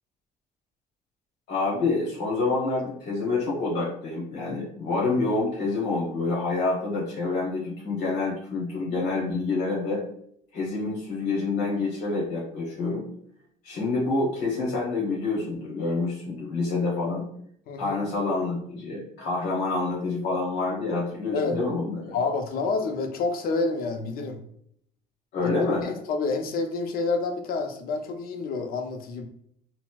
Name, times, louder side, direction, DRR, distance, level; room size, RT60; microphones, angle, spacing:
voice 1, 1.5-10.0 10.5-13.0 13.6-17.2 17.8-22.1 25.3-25.9, left 3 dB, 80° left, -6 dB, 0.9 m, -27 dB
voice 2, 17.7-18.0 21.3-21.6 22.1-24.4 25.4-25.5 25.8-29.3, left 3 dB, 60° left, 5 dB, 0.5 m, -28 dB
4.2 x 2.0 x 2.2 m, 0.68 s
cardioid pair, 110°, 17 cm